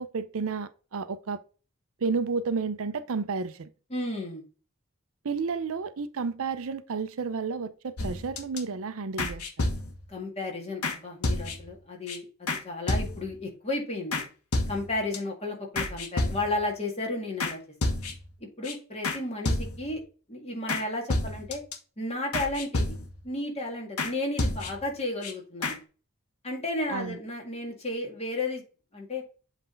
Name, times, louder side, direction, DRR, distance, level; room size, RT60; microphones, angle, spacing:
voice 1, 0.0-1.4 2.0-3.7 5.2-9.4 26.9-27.2, right 4 dB, 65° right, 0.6 m, -31 dB
voice 2, 3.9-4.4 10.1-14.2 14.7-17.9 18.4-20.0 20.3-21.6 22.0-23.0 23.2-25.8 26.4-28.6 28.9-29.2, left 2 dB, 30° left, 2.0 m, -33 dB
sound 1, 8.0-8.6 9.2-10.1 10.8-11.0 11.2-11.8 12.1-12.2 12.5-12.6 12.9-13.4 14.1-14.3 14.5-15.2 15.8-16.7 17.4-17.5 17.8-18.3 18.6-18.7 19.0-19.2 19.5-20.0 20.7-20.8 21.1-21.7 22.3-23.3 24.0-24.1 24.4-24.9 25.2-25.3 25.6-25.8, left 2 dB, 80° left, 1.4 m, -30 dB
7.8 x 3.4 x 3.9 m
head